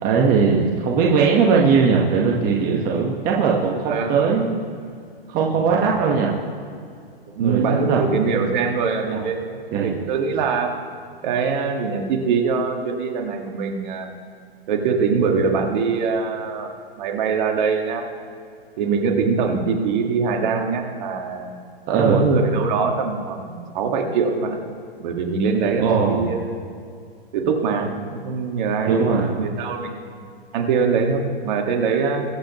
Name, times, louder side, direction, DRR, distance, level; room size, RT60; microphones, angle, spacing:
voice 1, 0.0-4.6 5.3-6.3 7.4-8.2 9.1-9.2 9.7-10.0 21.9-22.2 25.8-26.2 28.9-29.5, right 5 dB, 30° right, -2 dB, 1.4 m, -19 dB
voice 2, 3.9-4.2 5.6-5.9 7.4-10.7 11.2-14.1 14.7-16.7 17.0-18.0 18.8-21.5 22.0-24.6 25.0-26.4 27.3-30.2 30.5-32.2, right 5 dB, 50° right, 2 dB, 1.9 m, -23 dB
22.0 x 7.8 x 3.1 m, 2.3 s
hypercardioid pair, 135°, 30 cm